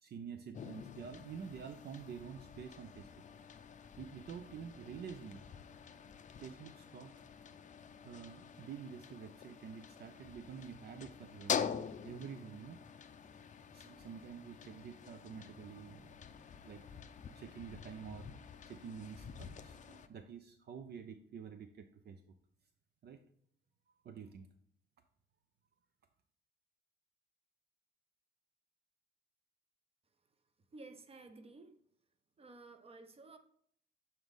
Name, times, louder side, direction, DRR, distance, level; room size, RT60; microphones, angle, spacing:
voice 1, 0.0-3.1 4.0-5.4 6.4-7.2 8.0-11.7 12.0-12.8 13.7-16.1 16.6-16.8 17.3-22.2 23.0-23.2 23.9-24.5, right 7 dB, 55° right, 0.5 m, -48 dB
sound 1, 0.5-20.1, left 7 dB, 40° left, 0.5 m, -46 dB
sound 2, 11.2-17.1, left 1 dB, 5° left, 1.3 m, -68 dB
voice 2, 30.7-31.8 32.4-33.4, right 3 dB, 30° right, 0.8 m, -54 dB
7.8 x 4.0 x 3.6 m
cardioid pair, 90°, 20 cm